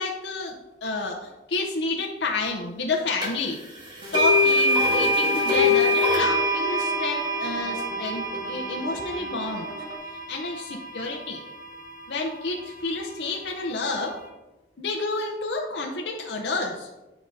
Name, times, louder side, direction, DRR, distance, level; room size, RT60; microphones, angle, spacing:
voice 1, 0.0-3.6 4.1-9.7 10.3-11.4 12.1-14.2 14.8-16.9, left 3 dB, 80° left, 0 dB, 0.6 m, -30 dB
sound 1, 3.2-3.3 4.1-12.2, left 1 dB, 25° right, 1.4 m, -24 dB
sound 2, 4.0-10.0, right 1 dB, 85° right, 1.5 m, -39 dB
9.7 x 4.8 x 2.6 m, 1.1 s
head